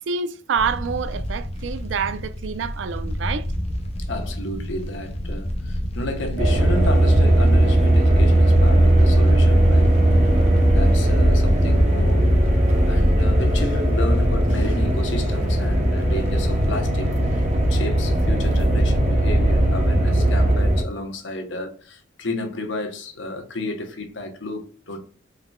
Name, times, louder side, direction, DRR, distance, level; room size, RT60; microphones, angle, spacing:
voice 1, 0.1-3.5, right 5 dB, 80° right, 0.4 m, -27 dB
sound 1, 0.6-14.6 15.0-15.1 15.3-15.5 16.4-16.9 17.2-17.3 17.6-17.7, equal, 30° left, 0.5 m, -32 dB
voice 2, 4.0-9.9 10.7-12.3 12.8-25.0, left 1 dB, 80° left, 0.9 m, -32 dB
sound 2, 6.4-20.8, right 1 dB, 35° right, 0.7 m, -18 dB
4.2 x 3.9 x 2.2 m
head